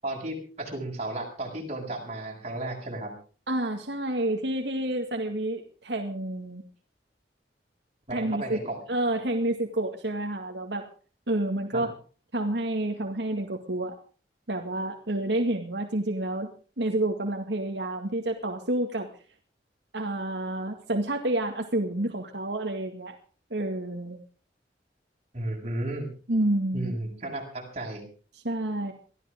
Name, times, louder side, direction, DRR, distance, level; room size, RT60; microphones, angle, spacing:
voice 1, 0.0-3.1 8.1-8.8 11.7-11.9 25.3-26.1 26.7-28.1, right 1 dB, 40° right, 0 dB, 7.2 m, -34 dB
voice 2, 3.5-6.6 8.1-10.8 11.3-11.9 12.3-14.0 14.5-16.5 16.8-19.1 19.9-23.1 23.5-24.2 26.3-26.9 28.4-28.9, right 1 dB, 80° right, 3 dB, 2.1 m, -29 dB
23.5 x 14.5 x 3.7 m, 0.39 s
head